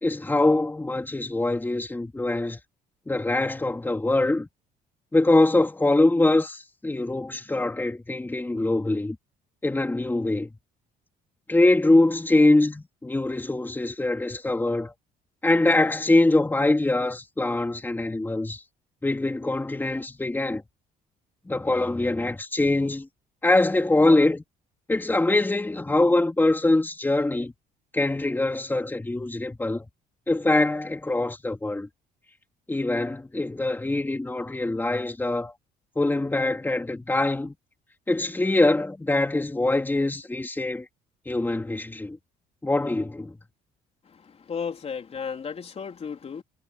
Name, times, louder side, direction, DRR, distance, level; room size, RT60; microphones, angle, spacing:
voice 1, 0.0-2.6 3.1-4.5 5.1-9.2 9.6-10.5 11.5-14.9 15.4-18.6 19.0-20.6 21.5-23.1 23.4-24.4 24.9-27.5 27.9-29.9 30.3-31.9 32.7-35.5 36.0-37.5 38.1-40.9 41.3-42.2 42.6-43.3, left 2 dB, 10° left, 3.2 m, -23 dB
voice 2, 44.5-46.4, left 6 dB, 35° left, 3.5 m, -33 dB
cardioid pair, 110°, 17 cm